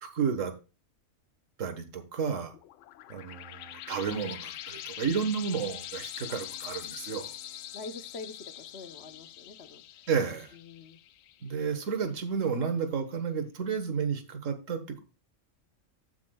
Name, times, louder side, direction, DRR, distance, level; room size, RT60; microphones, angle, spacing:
voice 1, 0.0-0.5 1.6-2.5 3.1-7.3 10.1-10.5 11.4-15.0, right 6 dB, 75° right, 7 dB, 1.7 m, -31 dB
sound 1, 2.5-11.7, left 12 dB, 70° left, 0.9 m, -43 dB
voice 2, 7.7-9.8 10.5-11.0, left 3 dB, 55° left, 10 dB, 1.1 m, -44 dB
15.5 x 5.9 x 2.3 m, 0.32 s
omnidirectional pair, 1.4 m